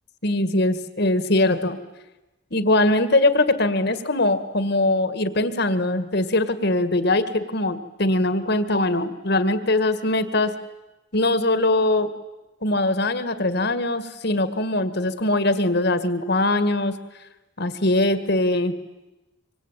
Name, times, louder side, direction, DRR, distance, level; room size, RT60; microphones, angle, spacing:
voice 1, 0.2-1.8 2.5-10.5 11.1-12.1 12.6-17.0 17.6-18.8, left 2 dB, 55° left, 12 dB, 2.0 m, -21 dB
25.5 x 25.0 x 9.2 m, 1.0 s
head